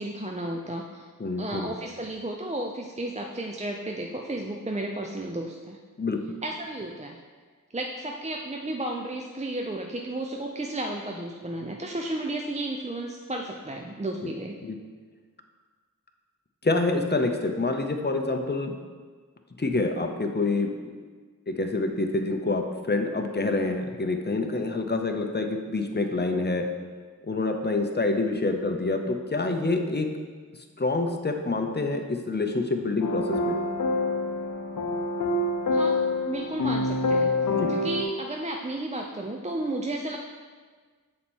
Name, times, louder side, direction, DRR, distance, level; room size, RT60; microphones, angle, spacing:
voice 1, 0.0-1.1 1.4-5.8 6.4-7.2 7.7-14.5 35.7-36.0 36.2-37.4 37.7-40.2, right 1 dB, 20° right, 1 dB, 0.5 m, -33 dB
voice 2, 1.2-1.7 6.0-6.2 14.2-14.3 14.6-14.8 16.6-18.7 19.6-20.9 21.5-26.7 27.2-30.1 30.8-33.6 37.5-37.7, left 3 dB, 30° left, 4 dB, 0.7 m, -27 dB
sound 1, 33.0-38.0, left 2 dB, 65° left, 0.6 m, -26 dB
7.2 x 4.3 x 4.4 m, 1.5 s
wide cardioid pair, 40°, 33 cm